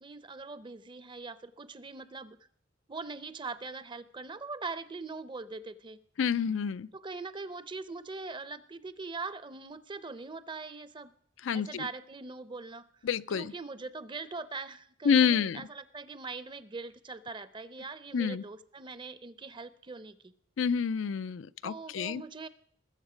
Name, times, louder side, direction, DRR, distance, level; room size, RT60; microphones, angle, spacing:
voice 1, 0.0-2.4 2.9-6.0 6.9-11.1 11.5-12.8 13.3-20.3 21.6-22.5, right 3 dB, 25° right, 0.6 m, -42 dB
voice 2, 6.2-6.9 11.4-11.9 13.0-13.5 15.0-15.6 18.1-18.4 20.6-22.2, left 7 dB, 80° left, 0.4 m, -28 dB
20.5 x 7.2 x 5.0 m
head